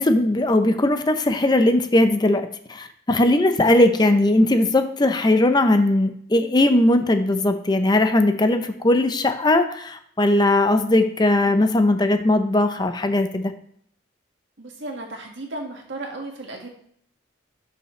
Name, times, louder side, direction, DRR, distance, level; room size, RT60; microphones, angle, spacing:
voice 1, 0.0-13.5, left 1 dB, 20° left, 8 dB, 0.5 m, -19 dB
voice 2, 14.6-16.7, right 2 dB, 75° right, 1 dB, 1.8 m, -35 dB
12.5 x 5.5 x 3.2 m, 0.67 s
head